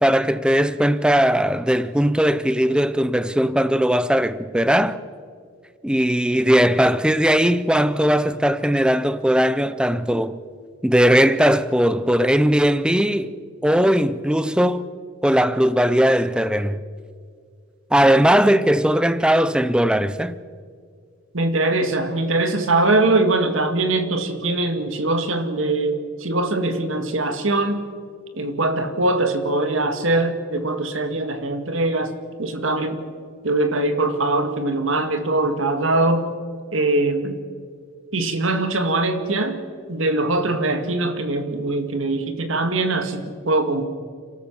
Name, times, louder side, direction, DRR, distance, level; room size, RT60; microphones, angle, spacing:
voice 1, 0.0-5.0 5.8-10.4 10.8-13.3 13.6-14.9 15.2-16.8 17.9-20.4, equal, 5° right, 0.6 m, -18 dB
voice 2, 21.3-27.9 28.3-32.1 32.4-33.0 33.4-36.3 36.7-37.4 38.1-39.6 39.9-43.8, right 2 dB, 70° right, 2.0 m, -22 dB
29.5 x 13.5 x 7.2 m
head